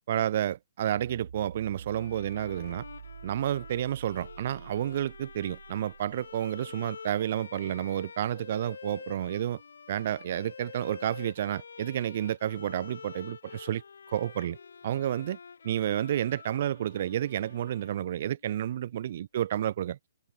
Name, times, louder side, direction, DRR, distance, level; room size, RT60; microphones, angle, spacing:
voice 1, 0.1-2.8 3.2-9.6 9.9-13.8 14.1-14.6 14.8-15.4 15.6-20.0, right 11 dB, 50° right, 0.6 m, -30 dB
sound 1, 0.9-7.2, right 6 dB, 70° right, 1.4 m, -47 dB
Bowed string instrument, 1.9-18.5, left 6 dB, 70° left, 1.1 m, -48 dB
figure-of-eight pair, 135°, 0 cm